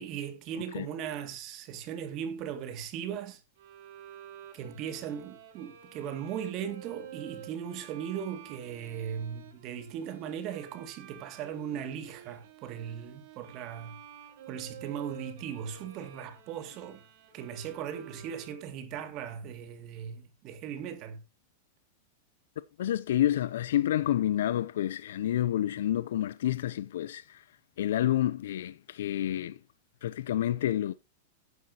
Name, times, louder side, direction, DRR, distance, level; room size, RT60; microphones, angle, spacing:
voice 1, 0.0-3.4 4.5-14.0 14.5-17.0 17.3-21.2, right 8 dB, 35° right, 2.3 m, -38 dB
Bowed string instrument, 3.6-18.9, right 9 dB, 60° right, 3.9 m, -50 dB
voice 2, 22.8-27.4 27.8-29.6 30.0-30.9, left 12 dB, 80° left, 0.5 m, -29 dB
11.0 x 9.9 x 2.9 m
supercardioid pair, 150°, 0 cm